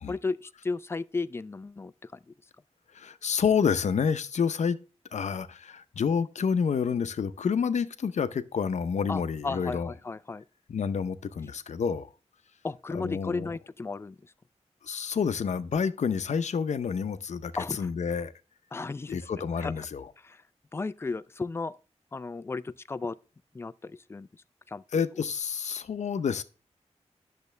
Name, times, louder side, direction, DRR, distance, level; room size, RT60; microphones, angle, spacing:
voice 1, 0.1-2.2 9.1-10.4 12.6-14.2 17.6-17.9 18.7-19.2 19.6-19.7 20.2-20.4 20.7-21.8 22.1-23.2 23.5-24.3 24.7-24.8, left 3 dB, 20° left, 0.3 m, -34 dB
voice 2, 2.9-4.8 5.1-9.9 10.7-12.1 12.9-13.5 14.8-18.3 19.1-20.1 24.9-26.4, left 6 dB, 80° left, 0.7 m, -29 dB
10.5 x 6.6 x 3.2 m
wide cardioid pair, 130°, 12 cm